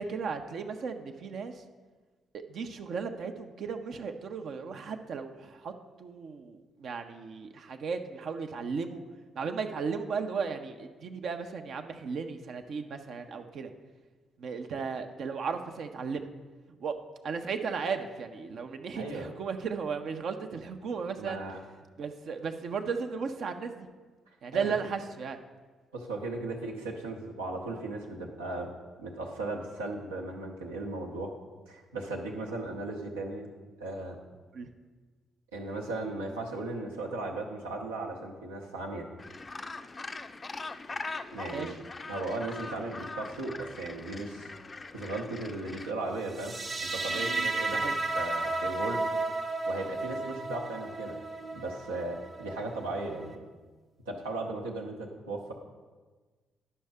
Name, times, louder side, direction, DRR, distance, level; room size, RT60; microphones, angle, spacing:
voice 1, 0.0-1.6 2.3-5.7 6.0-9.0 9.3-13.7 14.4-16.3 16.8-16.9 17.2-21.4 22.0-23.9 24.4-25.4 34.5-34.7 41.5-41.8 47.1-48.0, right 5 dB, 60° right, 6 dB, 0.6 m, -35 dB
voice 2, 18.9-19.3 21.2-21.6 24.5-24.7 25.9-28.7 29.0-31.3 31.7-33.5 33.8-34.2 35.5-39.1 41.3-41.7 42.1-44.5 44.9-46.6 46.9-49.0 49.7-51.2 51.5-53.4 54.1-55.5, right 2 dB, 90° right, 0 dB, 0.9 m, -36 dB
Gull seagull, 39.2-45.9, left 3 dB, 35° left, 0.4 m, -41 dB
sound 1, 46.3-53.4, right 3 dB, 40° right, 1.1 m, -33 dB
11.0 x 5.6 x 3.5 m, 1.4 s
hypercardioid pair, 45°, 0 cm